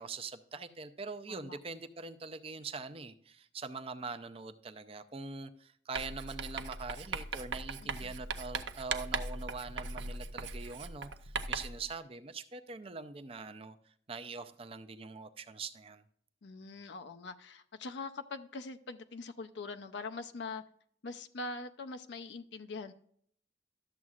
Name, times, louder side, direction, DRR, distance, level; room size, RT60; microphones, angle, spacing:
voice 1, 0.0-13.8 14.1-16.0, right 4 dB, 30° right, 0.5 m, -43 dB
voice 2, 1.3-1.6 7.8-8.1 16.4-20.6 21.0-22.9, left 3 dB, 65° left, 0.5 m, -43 dB
Writing, 6.0-11.8, right 4 dB, 75° right, 0.6 m, -39 dB
12.5 x 7.3 x 2.4 m
head